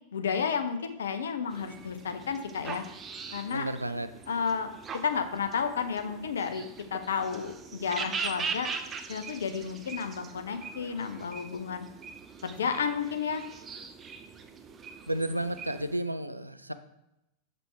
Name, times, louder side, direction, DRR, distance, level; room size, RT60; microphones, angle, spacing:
voice 1, 0.1-2.8 3.3-3.7 4.3-4.7 5.0-8.7 9.1-11.9 12.4-13.4, left 6 dB, 65° left, 8 dB, 0.6 m, -32 dB
sound 1, 1.5-16.0, right 5 dB, 25° right, 0.5 m, -41 dB
voice 2, 3.5-4.1 15.1-16.7, right 1 dB, 85° right, 11 dB, 0.3 m, -32 dB
6.5 x 5.3 x 3.2 m, 0.87 s
figure-of-eight pair, 90°, 0 cm